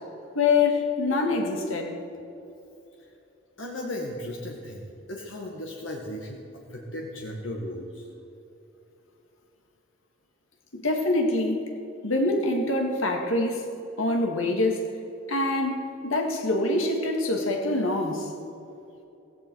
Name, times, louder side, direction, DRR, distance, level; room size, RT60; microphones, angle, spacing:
voice 1, 0.3-2.0 10.7-11.6 12.0-13.7 14.0-14.8 15.3-18.3, left 2 dB, 85° left, 2 dB, 2.1 m, -25 dB
voice 2, 3.6-8.1, left 1 dB, 70° left, -1 dB, 1.7 m, -36 dB
16.5 x 15.5 x 4.7 m, 2.8 s
head